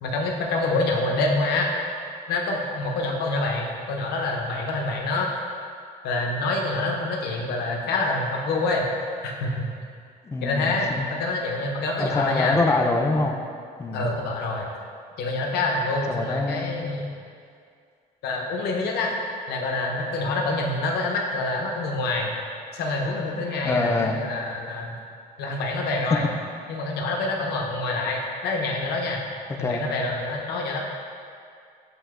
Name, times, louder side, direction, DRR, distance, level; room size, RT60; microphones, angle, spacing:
voice 1, 0.0-1.7 2.3-5.3 6.0-8.9 9.2-9.7 10.4-12.6 13.9-14.7 15.2-17.1 18.2-19.1 19.5-22.3 22.7-25.0 25.4-26.3 26.7-29.3 29.6-30.8, left 2 dB, 75° left, -1 dB, 0.6 m, -26 dB
voice 2, 10.3-11.1 12.0-13.4 13.8-14.1 16.1-16.7 23.6-24.2 29.6-29.8, left 3 dB, 15° left, 3 dB, 0.3 m, -25 dB
7.6 x 2.8 x 2.4 m, 2.3 s
cardioid pair, 110°, 17 cm